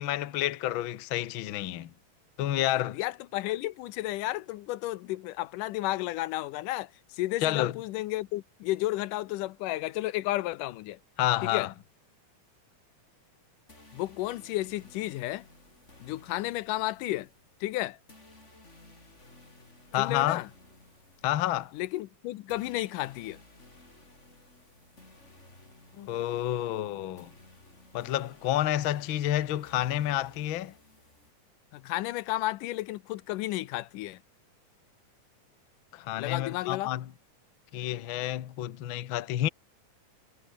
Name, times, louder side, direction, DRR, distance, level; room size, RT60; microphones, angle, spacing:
voice 1, 0.0-1.9 2.4-3.0 7.4-7.7 11.2-11.7 19.9-20.4 21.2-21.7 25.9-27.3 27.9-30.7 35.9-37.1 37.7-39.5, left 13 dB, 70° left, 1.2 m, -29 dB
voice 2, 2.9-11.0 11.4-11.7 13.9-15.5 16.0-17.3 17.6-18.0 20.0-20.5 21.7-23.4 31.7-34.2 36.2-36.9, left 17 dB, 85° left, 2.3 m, -32 dB
sound 1, 13.7-31.3, left 2 dB, 20° left, 5.6 m, -56 dB
omnidirectional pair, 3.8 m